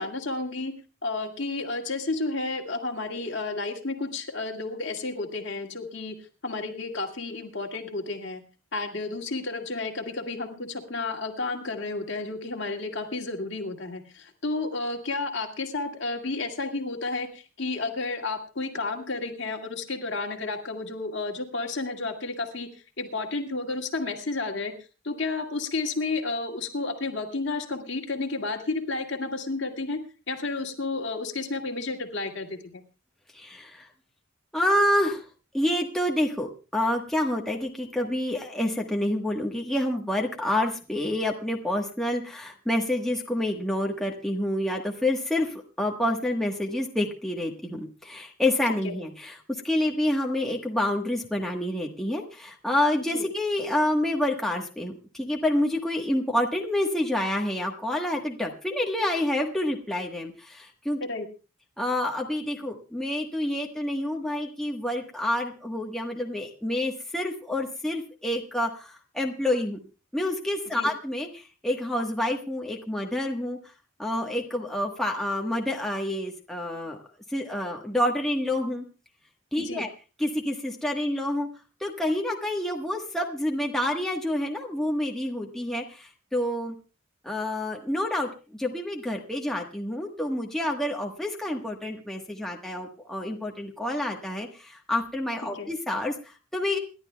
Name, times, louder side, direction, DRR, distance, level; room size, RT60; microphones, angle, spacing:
voice 1, 0.0-6.1 6.4-8.4 8.7-22.7 23.0-24.7 25.0-30.0 30.3-32.8 48.8-48.9 53.1-53.2 61.1-61.3 70.7-70.9 79.6-79.8 95.4-95.7, left 3 dB, 55° left, 3 dB, 2.0 m, -31 dB
voice 2, 33.3-33.9 34.5-35.2 35.5-61.0 61.8-69.8 70.1-73.6 74.0-77.0 77.3-78.8 79.5-79.9 80.2-81.5 81.8-86.7 87.2-88.3 88.6-96.8, left 1 dB, ahead, 0 dB, 1.2 m, -28 dB
28.0 x 11.5 x 2.2 m, 0.33 s
head